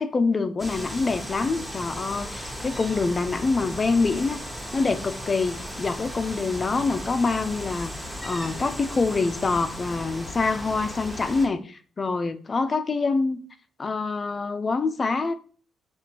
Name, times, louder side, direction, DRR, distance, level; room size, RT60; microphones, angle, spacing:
voice 1, 0.0-4.4 4.7-7.9 8.2-13.4 13.8-15.3, left 4 dB, 35° left, 0.4 m, -25 dB
sound 1, 0.6-11.5, equal, 5° right, 0.8 m, -36 dB
5.1 x 2.4 x 2.8 m
cardioid pair, 90°, 0 cm